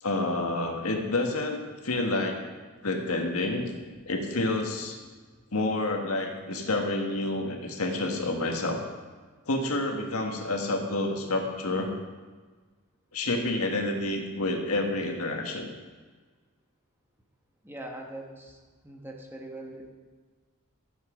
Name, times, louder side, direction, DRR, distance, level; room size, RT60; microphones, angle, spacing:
voice 1, 0.0-2.4 2.8-3.7 4.1-5.0 5.5-8.8 9.5-11.9 13.1-15.7, left 2 dB, 85° left, 2 dB, 1.7 m, -29 dB
voice 2, 3.7-4.0 5.0-5.4 17.6-18.6 18.8-19.9, right 1 dB, 10° right, 1 dB, 1.3 m, -43 dB
13.5 x 7.5 x 5.1 m, 1.4 s
head